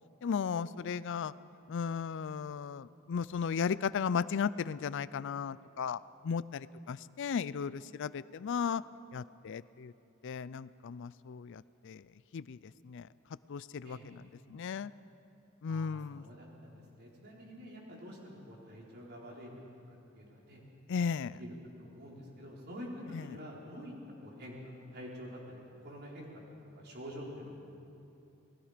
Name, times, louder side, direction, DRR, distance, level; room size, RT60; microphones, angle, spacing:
voice 1, 0.2-1.3 1.7-8.8 9.1-9.9 10.2-12.0 12.3-13.1 13.5-14.2 14.5-14.9 15.6-16.3 20.9-21.4 23.1-23.4, left 6 dB, 60° left, 18 dB, 0.4 m, -35 dB
voice 2, 15.7-19.5 19.9-20.6 21.4-21.5 21.8-23.9 24.2-26.4 26.7-27.6, equal, 50° right, -3 dB, 4.4 m, -47 dB
28.0 x 19.5 x 5.1 m, 2.7 s
head